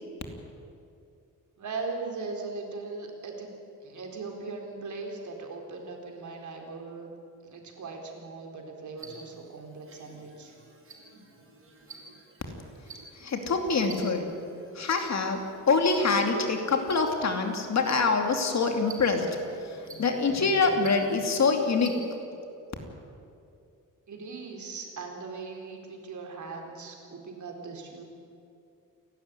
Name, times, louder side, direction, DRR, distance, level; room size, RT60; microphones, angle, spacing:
voice 1, 1.6-3.5 3.8-7.1 7.4-10.5 24.1-28.0, right 4 dB, 60° right, 2 dB, 4.1 m, -39 dB
sound 1, 9.0-22.2, right 2 dB, 40° right, 5.6 m, -49 dB
voice 2, 13.2-14.3 14.7-22.0, left 4 dB, 55° left, 4 dB, 2.8 m, -25 dB
29.0 x 12.5 x 9.9 m, 2.6 s
wide cardioid pair, 150°, 33 cm